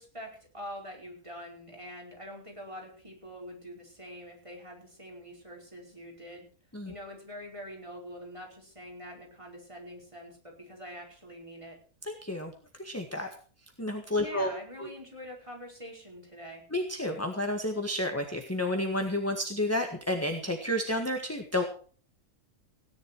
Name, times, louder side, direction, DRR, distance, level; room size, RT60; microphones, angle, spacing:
voice 1, 0.0-6.4 6.8-11.8 14.2-16.6, equal, 20° right, 0 dB, 5.1 m, -45 dB
voice 2, 12.0-12.5 12.8-13.3 13.8-14.5 14.8-14.9 16.7-21.6, left 1 dB, 10° left, 4 dB, 1.7 m, -30 dB
17.5 x 11.0 x 4.7 m, 0.42 s
omnidirectional pair, 1.5 m